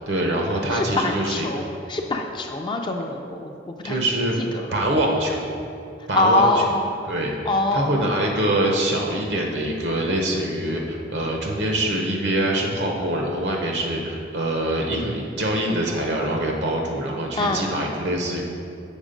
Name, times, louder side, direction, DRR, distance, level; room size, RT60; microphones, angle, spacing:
voice 1, 0.0-1.5 3.8-4.4 4.7-5.5 6.1-6.6 7.1-18.4, right 1 dB, 70° right, 0 dB, 0.8 m, -24 dB
voice 2, 0.7-4.0 4.4-4.7 6.1-6.9 7.5-8.0 17.4-17.7, left 2 dB, 25° left, 2 dB, 0.4 m, -24 dB
7.2 x 4.4 x 5.1 m, 2.6 s
head